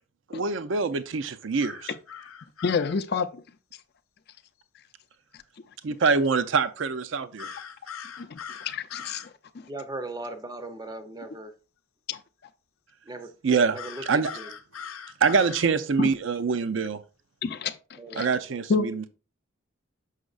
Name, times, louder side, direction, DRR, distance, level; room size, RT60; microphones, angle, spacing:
voice 1, 0.3-1.9 5.8-7.6 13.4-13.8 14.1-14.3 15.2-17.0 18.2-19.1, right 5 dB, 65° right, 0.5 m, -25 dB
sound 1, 1.6-3.0 7.4-9.3 13.7-15.6, left 7 dB, 90° left, 0.6 m, -41 dB
voice 2, 2.6-3.4 8.2-8.4 8.6-9.2 9.5-9.7 12.1-12.2 16.0-16.1 17.4-18.3 18.7-18.9, left 5 dB, 50° left, 0.4 m, -28 dB
voice 3, 9.6-11.5 13.0-13.3 13.7-14.5 18.0-18.3, right 2 dB, 20° right, 0.5 m, -38 dB
6.4 x 6.1 x 2.4 m
head